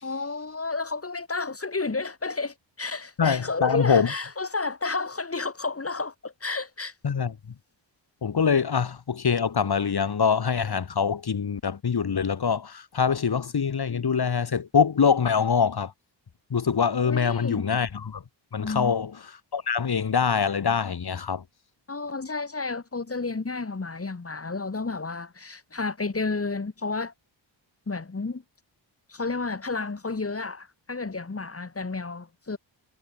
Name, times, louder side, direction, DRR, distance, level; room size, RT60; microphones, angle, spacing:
voice 1, 0.0-6.9 17.0-17.6 18.6-18.9 21.9-27.1 27.9-28.4 29.1-32.6, left 3 dB, 30° left, 5.0 m, -31 dB
voice 2, 3.2-4.1 7.0-7.5 8.2-15.9 16.5-18.2 18.5-21.4, left 6 dB, 55° left, 3.9 m, -24 dB
wide cardioid pair, 100°, 46 cm